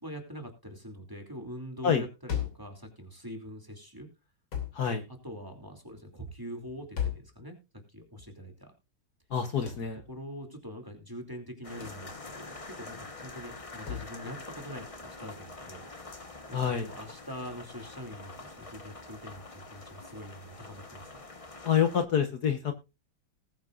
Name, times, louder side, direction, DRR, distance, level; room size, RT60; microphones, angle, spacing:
voice 1, 0.0-4.1 5.2-7.6 7.9-8.7 10.1-14.9 15.2-15.9 16.5-21.2, equal, 10° right, 3 dB, 2.5 m, -44 dB
sound 1, 2.3-2.7 4.5-4.8 7.0-7.3 9.7-9.9 11.8-12.1 13.9-14.1, left 9 dB, 85° left, 3.7 m, -34 dB
voice 2, 4.7-5.1 9.3-10.0 16.5-16.9 21.6-22.7, left 8 dB, 55° left, 7 dB, 1.5 m, -27 dB
sound 2, 11.6-22.0, left 3 dB, 20° left, 1.0 m, -46 dB
19.5 x 8.7 x 2.5 m, 0.28 s
omnidirectional pair, 2.2 m